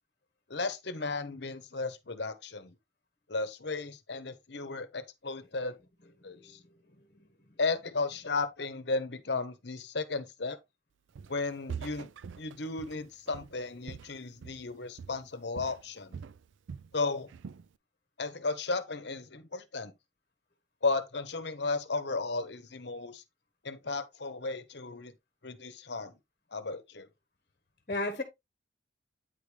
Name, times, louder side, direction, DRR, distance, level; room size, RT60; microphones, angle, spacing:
voice 1, 0.5-2.7 3.3-5.8 6.2-6.6 7.6-10.6 11.3-12.1 12.4-16.2 16.9-17.3 18.2-19.9 20.8-23.2 23.6-25.1 25.4-26.1 26.5-27.1, left 3 dB, 65° left, 1.0 m, -34 dB
voice 2, 7.0-7.6 27.9-28.2, left 2 dB, 40° left, 1.3 m, -36 dB
Walk footsteps, 11.2-11.4 11.7-14.7 15.0-15.3 15.6-16.9 17.3-17.7, right 6 dB, 85° right, 0.4 m, -44 dB
9.1 x 4.8 x 3.3 m
head